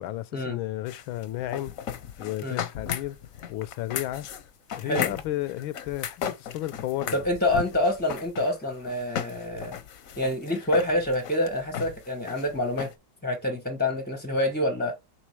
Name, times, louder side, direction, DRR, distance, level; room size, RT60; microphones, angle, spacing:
voice 1, 0.0-1.7 2.2-3.2 3.5-4.3 4.8-7.2, left 14 dB, 85° left, 1.4 m, -33 dB
sound 1, 0.9-12.9, left 9 dB, 60° left, 0.9 m, -36 dB
voice 2, 4.8-5.1 7.1-9.8 10.2-12.9 13.2-14.9, left 1 dB, 10° left, 0.5 m, -27 dB
6.3 x 3.9 x 4.5 m
omnidirectional pair, 2.2 m